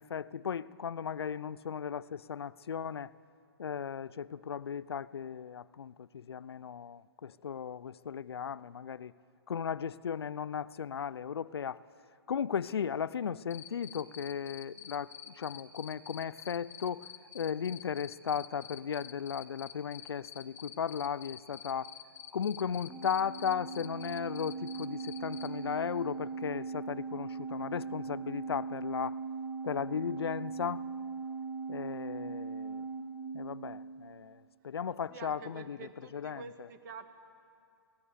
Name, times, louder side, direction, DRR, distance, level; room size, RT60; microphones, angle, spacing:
voice 1, 0.0-3.1 3.6-9.1 9.5-11.8 12.3-17.1 17.3-21.9 22.3-29.2 29.6-30.8 31.7-32.8 33.3-36.7, left 7 dB, 80° left, 19 dB, 0.6 m, -36 dB
Cricket, 13.5-25.5, left 10 dB, 20° left, 1.2 m, -47 dB
Organ, 22.9-34.1, right 4 dB, 10° right, 1.5 m, -40 dB
voice 2, 34.9-37.1, right 6 dB, 50° right, 8 dB, 1.8 m, -48 dB
24.5 x 17.5 x 7.0 m, 2.5 s
hypercardioid pair, 130°, 13 cm